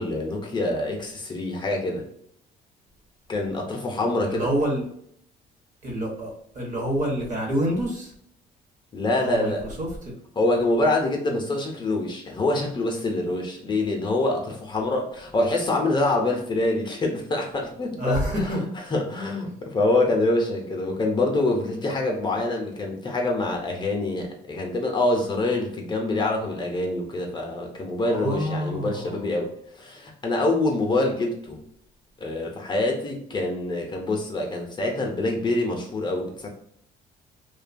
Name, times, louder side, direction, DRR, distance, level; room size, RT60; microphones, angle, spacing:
voice 1, 0.0-2.0 3.3-4.5 8.9-9.6 10.4-18.2 18.9-29.5 29.8-31.6 32.2-36.5, left 2 dB, 25° left, 1 dB, 0.5 m, -25 dB
voice 2, 4.2-4.8 5.8-8.1 9.2-10.1 18.0-18.7 28.0-29.3, equal, 50° right, 0 dB, 0.9 m, -27 dB
2.6 x 2.2 x 2.5 m, 0.68 s
cardioid pair, 110°, 17 cm